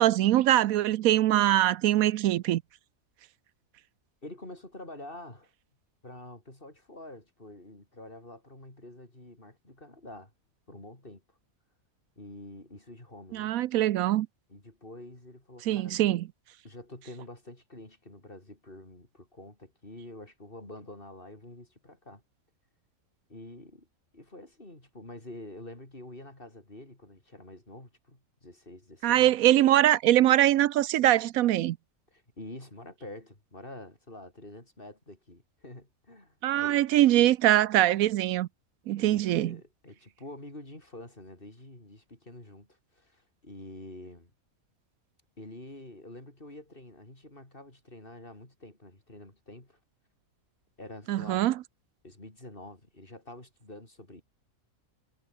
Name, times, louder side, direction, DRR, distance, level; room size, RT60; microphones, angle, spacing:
voice 1, 0.0-2.6 13.3-14.3 15.7-16.3 29.0-31.8 36.4-38.5 38.9-39.6 51.1-51.5, right 13 dB, 80° right, 1.0 m, -23 dB
voice 2, 4.2-5.5 6.0-10.3 10.7-11.4 12.2-13.5 14.5-16.2 16.6-22.2 23.3-23.9 24.1-29.3 32.1-36.8 39.0-44.3 45.4-49.8 50.8-51.5 52.0-54.2, left 1 dB, 40° left, 5.3 m, -47 dB
omnidirectional pair, 1.5 m